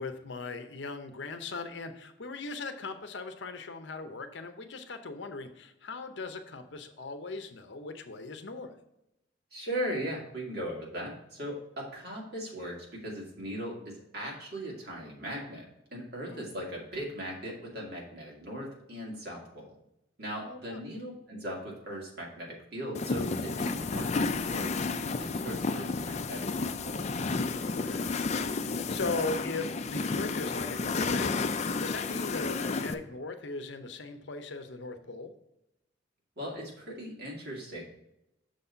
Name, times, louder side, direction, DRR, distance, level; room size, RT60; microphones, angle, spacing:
voice 1, 0.0-8.7 16.3-16.5 20.4-20.8 27.7-28.2 28.7-35.3, left 3 dB, 60° left, 8 dB, 0.7 m, -39 dB
voice 2, 9.5-19.8 20.2-24.8 25.2-27.1 36.4-37.8, equal, 50° right, -2 dB, 2.3 m, -39 dB
sound 1, 22.9-32.9, left 4 dB, 35° left, 0.4 m, -31 dB
6.4 x 4.1 x 5.6 m, 0.85 s
head